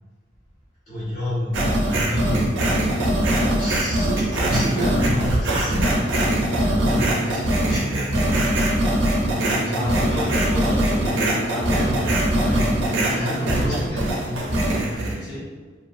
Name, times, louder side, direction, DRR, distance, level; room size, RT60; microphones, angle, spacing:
voice 1, 0.9-2.6 3.4-6.2 6.5-9.0 9.4-10.3 11.6-12.7 13.1-14.4 14.7-15.3, left 1 dB, 45° left, -13 dB, 1.3 m, -30 dB
sound 1, 1.5-15.1, right 1 dB, 90° right, 0.5 m, -22 dB
voice 2, 9.7-11.6 15.2-15.4, equal, 70° left, -7 dB, 1.1 m, -32 dB
2.6 x 2.5 x 2.5 m, 1.4 s
head